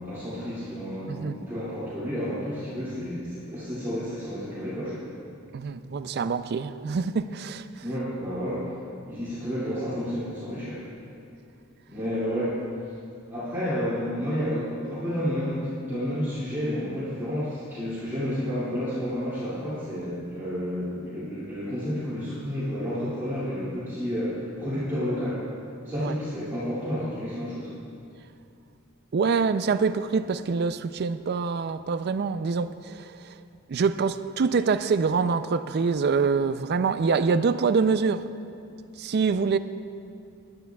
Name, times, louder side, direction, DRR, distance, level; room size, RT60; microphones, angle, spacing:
voice 1, 0.0-5.0 7.8-8.7 9.1-10.8 11.9-12.6 13.3-25.4 25.8-27.7, equal, 10° right, 2.4 m, -30 dB
voice 2, 1.1-1.4 5.5-7.8 26.0-26.1 29.1-33.4 33.7-38.3 39.0-39.6, right 5 dB, 50° right, 0.4 m, -25 dB
20.0 x 10.5 x 2.3 m
head